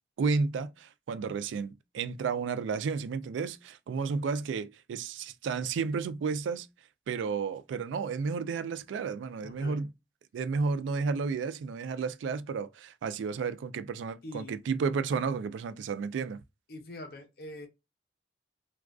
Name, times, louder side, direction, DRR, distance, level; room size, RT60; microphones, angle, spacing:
voice 1, 0.2-6.7 7.1-9.9 10.3-16.4, right 5 dB, 90° right, 0.3 m, -32 dB
voice 2, 9.4-9.9 14.2-14.6 16.7-17.7, left 1 dB, 55° left, 0.6 m, -43 dB
2.3 x 2.3 x 2.3 m
head